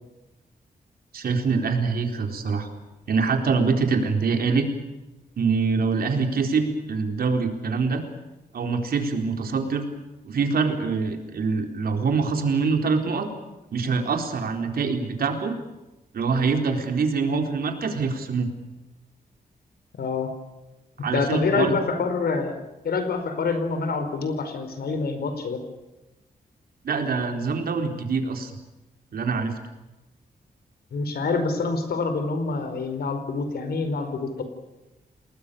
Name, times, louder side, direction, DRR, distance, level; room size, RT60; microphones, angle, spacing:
voice 1, 1.1-2.7 3.1-4.6 5.4-8.0 8.5-9.8 10.2-13.3 13.7-15.6 16.1-18.5 21.0-21.7 26.8-28.5 29.1-29.5, right 4 dB, 70° right, 4 dB, 4.2 m, -24 dB
voice 2, 20.0-20.4 21.1-22.6 22.8-25.6 30.9-34.4, left 4 dB, 85° left, 8 dB, 4.8 m, -26 dB
29.5 x 20.0 x 7.0 m, 1.0 s
wide cardioid pair, 170°, 16 cm